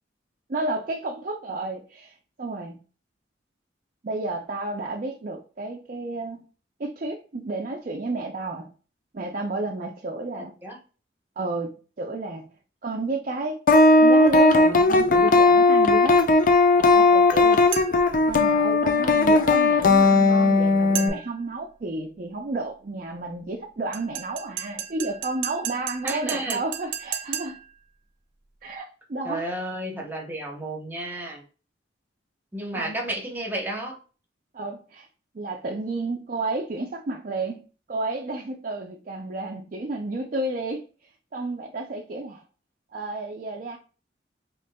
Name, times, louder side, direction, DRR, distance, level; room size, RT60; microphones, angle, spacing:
voice 1, 0.5-2.8 4.0-6.4 6.8-8.7 9.1-10.5 11.4-12.5 12.8-13.6 14.0-16.2 16.7-17.7 18.2-27.6 28.6-29.5 32.7-33.0 34.5-35.1 35.3-37.6 37.9-40.8 41.3-42.4 42.9-43.8, right 2 dB, 45° right, 0.4 m, -31 dB
voice 2, 10.3-10.8 26.0-26.6 29.2-31.4 32.5-34.0, right 1 dB, 10° right, 0.9 m, -32 dB
sound 1, 13.7-21.1, left 3 dB, 45° left, 0.5 m, -17 dB
sound 2, 17.7-18.2 20.9-21.5 23.9-27.8, right 9 dB, 90° right, 0.8 m, -34 dB
5.0 x 3.1 x 2.2 m
head